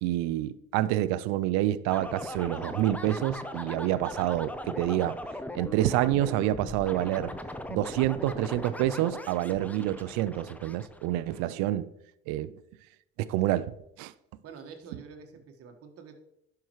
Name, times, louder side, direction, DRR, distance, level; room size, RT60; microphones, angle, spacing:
voice 1, 0.0-5.2 5.5-7.3 7.7-11.9 12.3-12.5 13.2-13.7 14.0-14.1, right 14 dB, 70° right, 0.5 m, -28 dB
sound 1, 1.9-11.4, left 1 dB, 5° left, 0.7 m, -39 dB
voice 2, 14.4-16.2, right 5 dB, 50° right, 1.5 m, -47 dB
11.0 x 5.8 x 3.1 m
supercardioid pair, 80°, 29 cm